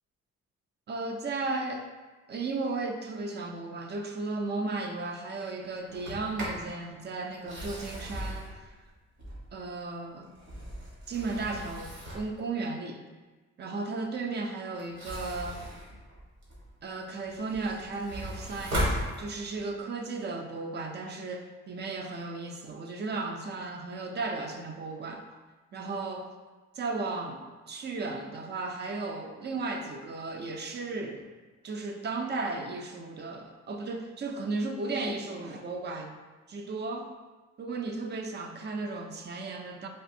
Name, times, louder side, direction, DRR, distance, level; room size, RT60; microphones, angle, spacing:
voice 1, 0.9-1.9 2.3-8.7 9.5-10.3 11.1-13.0 13.6-15.6 16.8-25.2 25.7-26.3 26.7-31.3 31.6-36.2 36.5-37.1 37.6-39.9, right 3 dB, 35° right, 4 dB, 0.4 m, -35 dB
Sliding door, 5.9-6.7 7.3-9.7 10.2-12.4 14.8-16.7 17.2-19.7, equal, 65° right, 1.2 m, -37 dB
3.4 x 2.5 x 2.6 m, 1.3 s
cardioid pair, 90°, 30 cm